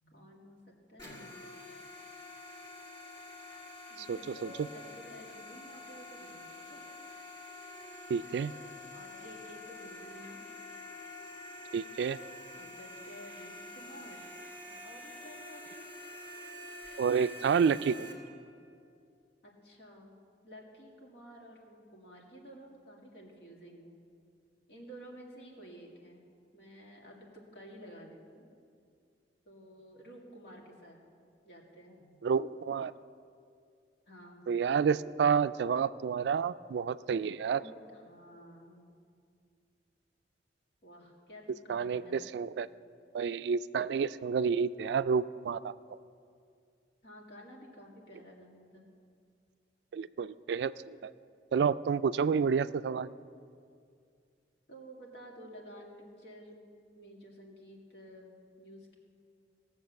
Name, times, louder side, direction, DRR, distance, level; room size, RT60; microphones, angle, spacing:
voice 1, 0.0-1.3 3.9-6.8 8.9-10.4 12.5-14.3 14.6-15.9 19.4-20.2 20.4-24.0 24.7-26.2 26.5-28.4 29.5-31.0 31.4-32.1 34.1-34.4 37.5-38.8 40.8-42.3 47.0-48.8 49.9-50.1 54.7-56.6 56.9-59.0, equal, 70° left, -1 dB, 2.1 m, -52 dB
sound 1, 1.0-18.1, left 1 dB, 20° left, 1.9 m, -47 dB
voice 2, 8.1-8.5 11.7-12.2 17.0-18.1 32.2-32.9 34.5-37.6 41.7-42.7 43.1-46.0 49.9-51.1 51.5-53.1, right 6 dB, 70° right, 15 dB, 0.3 m, -29 dB
17.5 x 7.1 x 6.5 m, 2.3 s
head